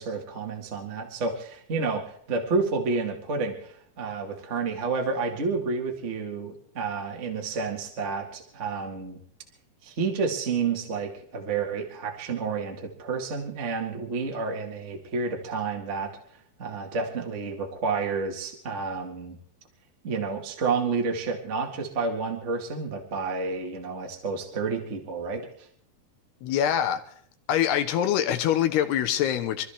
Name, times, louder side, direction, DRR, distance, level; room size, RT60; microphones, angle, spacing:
voice 1, 0.0-9.2 9.8-16.1 16.6-19.4 20.0-25.7, right 4 dB, 60° right, 0.7 m, -30 dB
voice 2, 26.4-27.0 27.5-29.7, left 10 dB, 80° left, 3.0 m, -24 dB
26.5 x 13.5 x 3.5 m
omnidirectional pair, 4.8 m